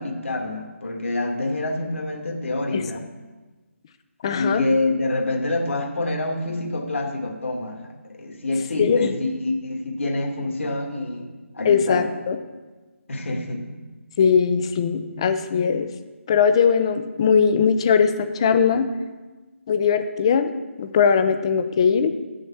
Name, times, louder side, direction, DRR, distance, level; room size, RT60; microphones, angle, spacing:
voice 1, 0.0-3.1 4.3-11.3 11.5-12.1 13.1-13.6, left 2 dB, 65° left, 2 dB, 2.0 m, -26 dB
voice 2, 4.2-4.7 8.8-9.1 11.6-12.4 14.2-15.9 16.3-18.9 19.7-20.5 20.8-22.1, left 6 dB, 20° left, 10 dB, 0.5 m, -20 dB
7.4 x 6.4 x 7.2 m, 1.3 s
figure-of-eight pair, 165°, 7 cm